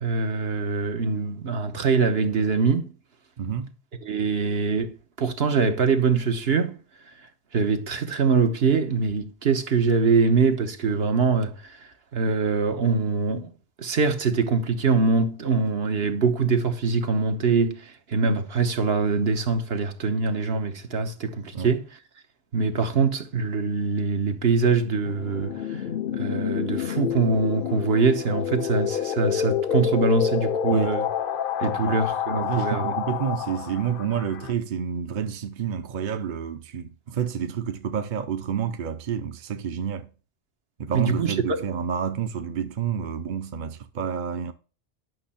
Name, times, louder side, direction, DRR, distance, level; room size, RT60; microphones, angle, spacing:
voice 1, 0.0-2.9 4.0-6.8 7.5-11.8 12.1-13.5 13.8-21.8 22.5-25.8 26.1-31.1 31.6-33.0 40.9-41.6, right 4 dB, 75° right, 1.3 m, -23 dB
voice 2, 3.4-3.7 21.5-21.7 30.7-31.0 31.9-32.0 32.4-40.1 40.8-44.5, right 8 dB, 55° right, 0.8 m, -29 dB
sound 1, 25.0-34.5, left 9 dB, 60° left, 0.8 m, -28 dB
11.0 x 6.2 x 4.3 m
omnidirectional pair, 1.1 m